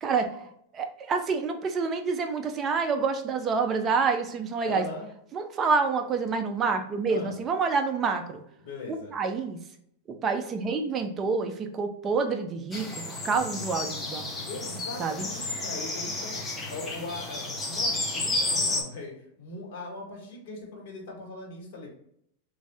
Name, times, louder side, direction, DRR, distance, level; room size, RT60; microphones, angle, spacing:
voice 1, 0.0-4.9 5.3-8.4 8.9-9.6 10.1-14.3 15.0-15.3, right 4 dB, 25° right, 6 dB, 0.5 m, -28 dB
voice 2, 4.6-5.1 7.1-7.3 8.6-9.2 14.4-16.4 16.7-21.9, left 2 dB, 55° left, -2 dB, 1.4 m, -40 dB
sound 1, 12.7-18.8, left 2 dB, 15° left, 0.6 m, -31 dB
3.1 x 2.6 x 3.4 m, 0.72 s
supercardioid pair, 145°, 0 cm